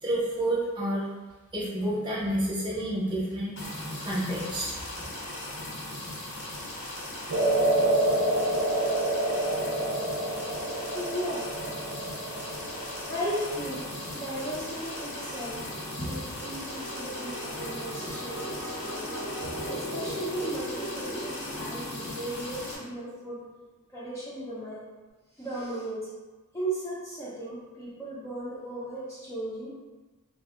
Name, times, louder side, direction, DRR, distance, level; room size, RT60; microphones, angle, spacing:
voice 1, 0.0-1.0 1.5-4.7, right 1 dB, 20° right, -7 dB, 0.7 m, -29 dB
sound 1, 3.6-22.8, left 1 dB, 60° left, 0.6 m, -38 dB
sound 2, 7.3-15.6, right 1 dB, 70° right, 0.5 m, -29 dB
voice 2, 10.9-11.5 13.1-13.9 14.1-19.1 19.4-23.4 23.9-24.8 25.4-26.1 26.5-29.7, right 1 dB, 15° left, -8 dB, 0.4 m, -36 dB
sound 3, 12.5-23.0, equal, 90° left, 0.9 m, -40 dB
3.4 x 2.0 x 2.3 m, 1.2 s
head